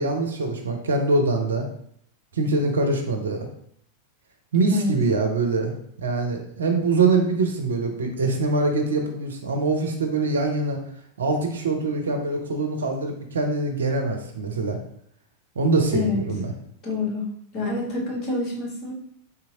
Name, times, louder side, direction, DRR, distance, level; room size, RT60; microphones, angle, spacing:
voice 1, 0.0-1.7 2.3-3.5 4.5-5.7 6.0-10.8 11.2-14.8 15.6-16.5, right 3 dB, 65° right, 4 dB, 0.5 m, -23 dB
voice 2, 16.8-18.9, left 3 dB, 35° left, -4 dB, 1.3 m, -27 dB
3.6 x 2.7 x 2.8 m, 0.69 s
figure-of-eight pair, 90°, 0 cm